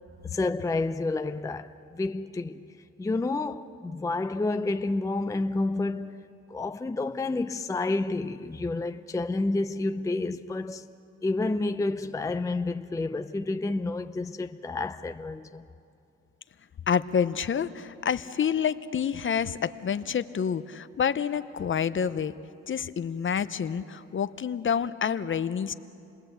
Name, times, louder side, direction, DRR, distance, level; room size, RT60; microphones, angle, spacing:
voice 1, 0.2-2.7 3.0-10.9 11.2-15.6, left 2 dB, 10° left, 0.6 m, -30 dB
voice 2, 16.9-22.3 22.7-25.7, left 7 dB, 40° left, 0.8 m, -28 dB
29.0 x 19.5 x 8.0 m
cardioid pair, 90°, 30 cm